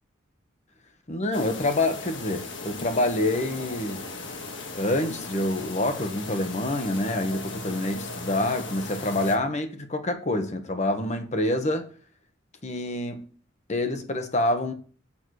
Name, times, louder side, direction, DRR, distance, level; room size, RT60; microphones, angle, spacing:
voice 1, 1.1-4.1 4.7-11.9 12.6-13.3 13.7-14.7, left 1 dB, 35° left, 1.2 m, -27 dB
sound 1, 1.3-9.4, left 3 dB, 70° left, 1.7 m, -37 dB
7.6 x 7.3 x 6.4 m
head